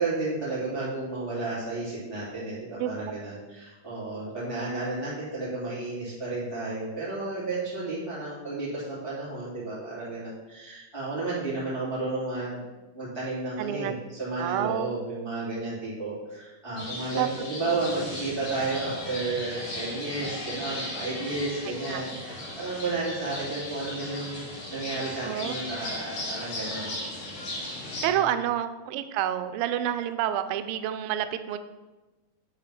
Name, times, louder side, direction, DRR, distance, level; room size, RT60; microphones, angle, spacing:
voice 1, 0.0-12.6 12.9-13.9 14.2-27.0, right 3 dB, 10° left, -9 dB, 2.2 m, -32 dB
voice 2, 13.6-14.0 14.4-14.9 17.2-17.3 17.7-17.8 21.7-22.0 25.2-25.5 28.0-31.6, right 11 dB, 90° right, 10 dB, 2.3 m, -29 dB
sound 1, 16.8-28.1, left 1 dB, 65° left, 4.1 m, -37 dB
9.0 x 3.9 x 5.8 m, 1.1 s
omnidirectional pair, 4.0 m